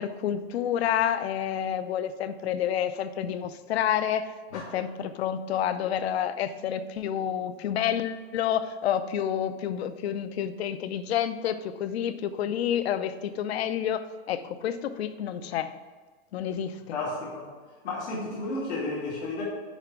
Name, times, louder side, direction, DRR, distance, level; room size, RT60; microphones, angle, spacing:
voice 1, 0.0-15.7 16.3-17.0, left 9 dB, 70° left, 12 dB, 0.6 m, -29 dB
voice 2, 16.9-17.5 17.8-19.4, left 2 dB, 90° left, -6 dB, 2.4 m, -32 dB
10.0 x 3.4 x 5.9 m, 1.4 s
supercardioid pair, 165°, 33 cm